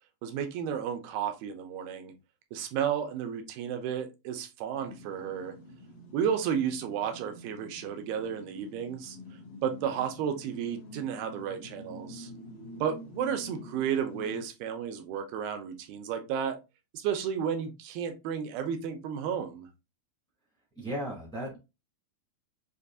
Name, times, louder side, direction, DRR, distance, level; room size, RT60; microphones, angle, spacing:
voice 1, 0.2-2.1 2.5-5.6 6.1-9.2 9.6-12.3 12.8-16.6 16.9-19.7, right 8 dB, 85° right, 6 dB, 2.6 m, -32 dB
sound 1, 4.8-14.4, left 1 dB, 80° left, 1.6 m, -47 dB
voice 2, 20.7-21.6, equal, 5° left, -4 dB, 0.8 m, -35 dB
6.6 x 2.6 x 2.5 m, 0.26 s
omnidirectional pair, 4.3 m